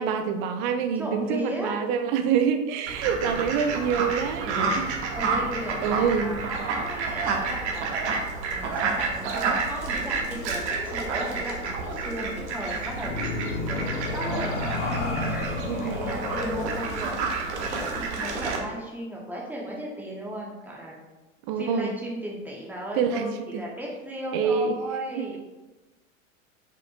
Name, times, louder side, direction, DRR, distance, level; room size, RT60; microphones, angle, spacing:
voice 1, 0.0-4.9 5.8-6.3 15.7-16.1 21.5-21.9 23.0-23.6 24.3-24.8 25.1-25.3, right 7 dB, 40° right, 7 dB, 0.5 m, -26 dB
voice 2, 0.8-1.8 5.1-13.2 13.6-21.0 21.6-25.4, right 1 dB, 5° right, -3 dB, 1.1 m, -36 dB
Fowl, 2.9-18.6, right 4 dB, 55° right, 1.0 m, -30 dB
sound 1, 9.9-18.8, left 3 dB, 60° left, 1.0 m, -34 dB
5.2 x 4.2 x 2.4 m, 1.1 s
figure-of-eight pair, 95°, 40 cm